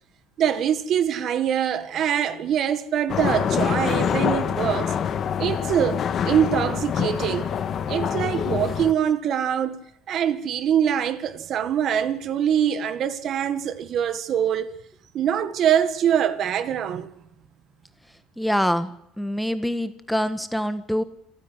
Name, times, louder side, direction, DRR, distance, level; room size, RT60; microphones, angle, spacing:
voice 1, 0.4-4.9 5.4-7.5 7.9-9.8 10.1-14.7 15.1-17.1, right 9 dB, 50° right, 1.8 m, -24 dB
sound 1, 3.1-8.9, left 8 dB, 45° left, 1.8 m, -25 dB
voice 2, 18.4-18.9 19.2-21.0, equal, ahead, 1.4 m, -25 dB
28.0 x 9.6 x 9.7 m
cardioid pair, 120°, 0 cm